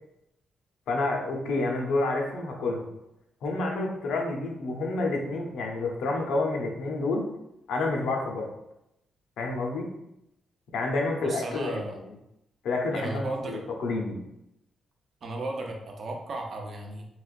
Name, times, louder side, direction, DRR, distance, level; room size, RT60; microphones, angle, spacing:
voice 1, 0.9-2.9 3.4-7.2 7.7-8.5 9.4-9.9 10.7-11.9 12.6-14.2, left 2 dB, 90° left, 1 dB, 0.6 m, -29 dB
voice 2, 11.2-12.0 12.9-13.6 15.2-17.1, right 2 dB, 40° right, 2 dB, 0.5 m, -35 dB
3.3 x 2.9 x 2.4 m, 0.85 s
wide cardioid pair, 160°, 0 cm